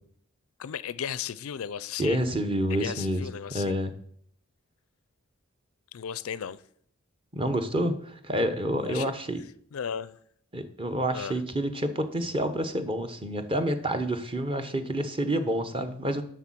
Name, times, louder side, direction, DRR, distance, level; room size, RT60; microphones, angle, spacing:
voice 1, 0.6-2.2 2.7-3.7 5.9-6.6 8.8-9.1 9.7-10.2 11.1-11.4, left 8 dB, 70° left, 0.4 m, -35 dB
voice 2, 2.0-3.2 3.5-3.9 7.3-9.4 10.5-16.2, right 1 dB, 25° right, 0.9 m, -28 dB
8.1 x 6.3 x 7.5 m
head